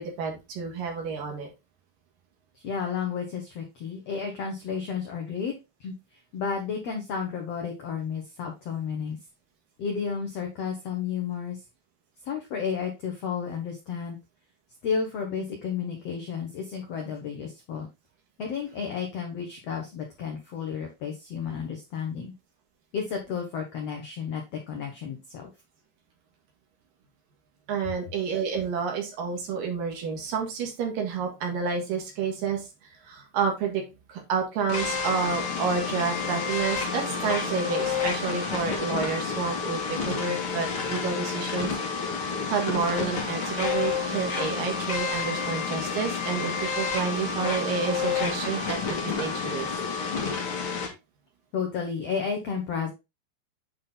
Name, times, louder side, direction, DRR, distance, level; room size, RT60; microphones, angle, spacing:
voice 1, 0.0-1.5 27.7-49.7, right 5 dB, 65° right, 2 dB, 3.0 m, -30 dB
voice 2, 2.6-5.5 5.8-5.9 6.3-9.2 9.8-11.6 12.3-14.2 14.8-17.9 18.4-22.3 22.9-25.5 51.5-52.9, left 6 dB, 80° left, 2 dB, 1.4 m, -32 dB
sound 1, 34.7-50.9, left 5 dB, 50° left, 1.7 m, -29 dB
8.5 x 3.9 x 3.8 m, 0.25 s
omnidirectional pair, 4.6 m